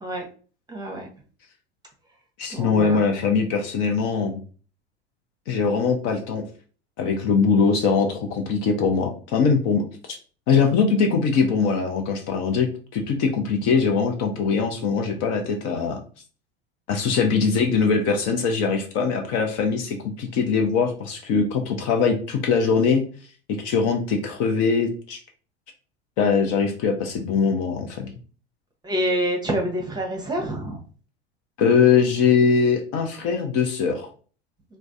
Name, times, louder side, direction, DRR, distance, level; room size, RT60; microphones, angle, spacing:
voice 1, 0.7-1.1 2.5-3.0 28.8-30.8, equal, 10° right, 0 dB, 0.9 m, -27 dB
voice 2, 2.4-4.4 5.5-6.4 7.0-9.8 10.5-16.0 16.9-23.0 23.6-25.2 26.2-28.2 31.6-34.1, left 5 dB, 45° left, 4 dB, 0.7 m, -22 dB
3.2 x 2.1 x 2.6 m, 0.39 s
hypercardioid pair, 85°, 34 cm